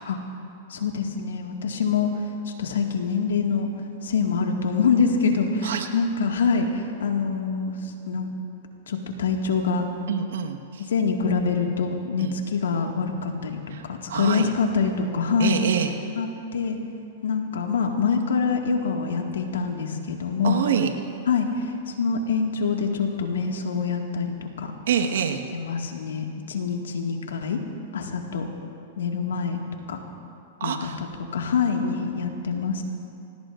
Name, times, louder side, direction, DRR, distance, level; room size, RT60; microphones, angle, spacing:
voice 1, 0.7-2.2 2.6-3.7 4.0-8.3 8.9-9.9 10.9-15.6 16.2-16.8 17.2-20.6 21.3-24.7 25.5-27.6 27.9-28.5 29.0-29.6 29.9-30.0 30.6-30.8 31.3-32.8, left 5 dB, 85° left, 2 dB, 1.9 m, -25 dB
voice 2, 10.1-10.9 12.2-12.3 13.7-13.8 14.1-14.5 15.4-16.0 20.4-20.9 24.9-25.4 30.6-31.0, right 8 dB, 80° right, 4 dB, 1.4 m, -26 dB
25.5 x 17.5 x 2.6 m, 2.6 s
hypercardioid pair, 125°, 0 cm